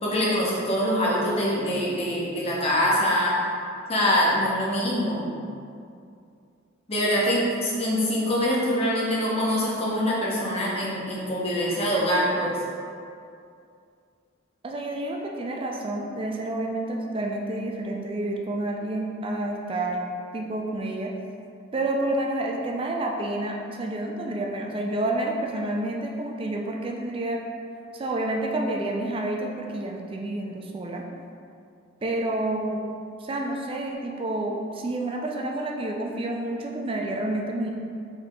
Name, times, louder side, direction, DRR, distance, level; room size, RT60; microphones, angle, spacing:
voice 1, 0.0-3.4 3.9-5.3 6.9-12.6, equal, 30° left, -6 dB, 0.9 m, -24 dB
voice 2, 14.6-20.0 20.3-21.1 21.7-27.4 27.9-31.0 32.0-32.9 33.2-37.7, right 1 dB, 25° right, 0 dB, 0.4 m, -29 dB
4.7 x 2.9 x 3.6 m, 2.4 s
head